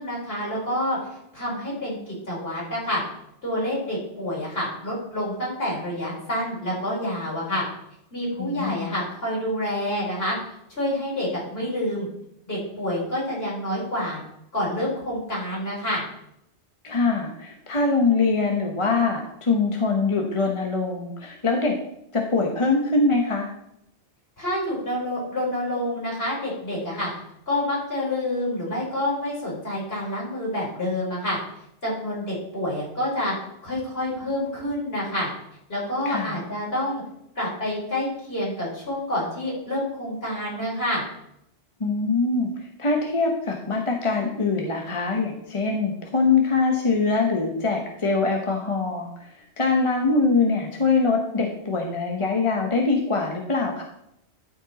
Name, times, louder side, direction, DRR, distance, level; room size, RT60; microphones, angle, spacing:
voice 1, 0.0-3.0 3.4-7.6 8.1-10.4 10.7-12.1 12.5-14.2 14.5-16.0 24.4-27.1 27.5-31.4 31.8-33.3 33.6-35.3 35.7-37.0 37.4-41.0, left 1 dB, 60° left, -5 dB, 4.2 m, -28 dB
voice 2, 8.4-8.9 16.8-21.7 22.1-23.5 36.0-36.4 41.8-42.5 42.8-49.3 49.6-53.8, left 4 dB, 30° left, 1 dB, 1.0 m, -23 dB
12.5 x 5.2 x 4.1 m, 0.77 s
omnidirectional pair, 1.2 m